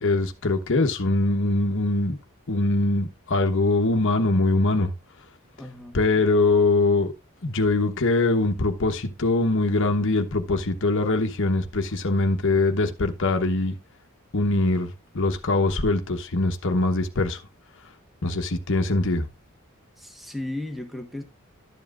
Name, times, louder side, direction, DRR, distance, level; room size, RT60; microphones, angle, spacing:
voice 1, 0.0-2.2 2.5-4.9 5.9-7.1 7.4-13.8 14.3-14.9 15.1-17.4 18.2-19.3, left 2 dB, 60° left, 1.0 m, -22 dB
voice 2, 5.6-6.3 20.0-21.2, left 1 dB, ahead, 1.1 m, -35 dB
12.0 x 7.3 x 2.5 m
head